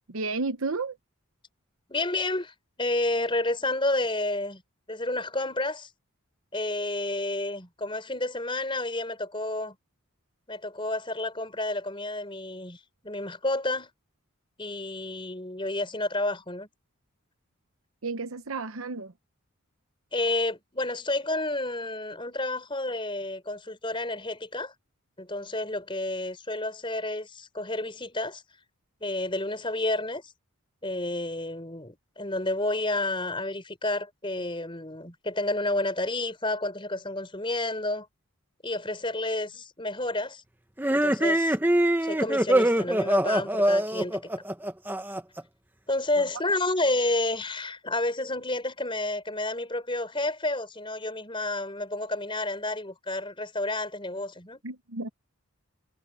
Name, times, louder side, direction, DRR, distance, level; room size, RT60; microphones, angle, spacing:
voice 1, 0.1-1.0 18.0-19.1 54.6-55.1, right 3 dB, 75° right, 0.9 m, -32 dB
voice 2, 1.9-4.6 4.9-5.9 6.5-9.8 10.5-13.9 14.6-16.7 20.1-24.7 25.2-28.4 29.0-30.3 30.8-38.1 38.6-40.4 40.9-41.6 42.0-44.3 45.9-54.6, left 2 dB, 25° left, 4.9 m, -30 dB
sound 1, 40.8-45.4, right 1 dB, 10° right, 0.9 m, -24 dB
head